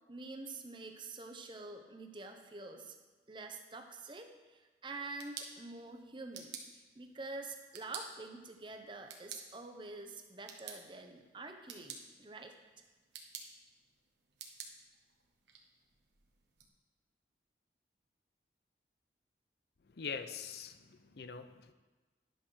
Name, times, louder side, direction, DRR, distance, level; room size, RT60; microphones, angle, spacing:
voice 1, 0.1-3.0 3.3-6.6 6.9-12.5, right 3 dB, 25° right, 4 dB, 0.9 m, -47 dB
sound 1, 4.9-16.7, right 6 dB, 85° right, 1.2 m, -52 dB
voice 2, 19.9-21.7, left 5 dB, 65° left, 11 dB, 0.6 m, -43 dB
10.0 x 5.6 x 6.4 m, 1.2 s
head